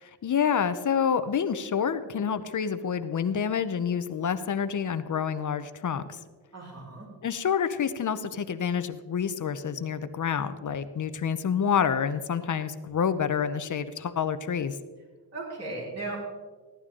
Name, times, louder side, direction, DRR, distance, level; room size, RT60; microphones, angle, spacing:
voice 1, 0.0-6.2 7.2-14.7, left 7 dB, 45° left, 12 dB, 0.7 m, -28 dB
voice 2, 6.5-7.1 15.3-16.3, right 2 dB, 35° right, -4 dB, 4.7 m, -36 dB
16.0 x 11.5 x 3.7 m, 1.4 s
cardioid pair, 100°, 41 cm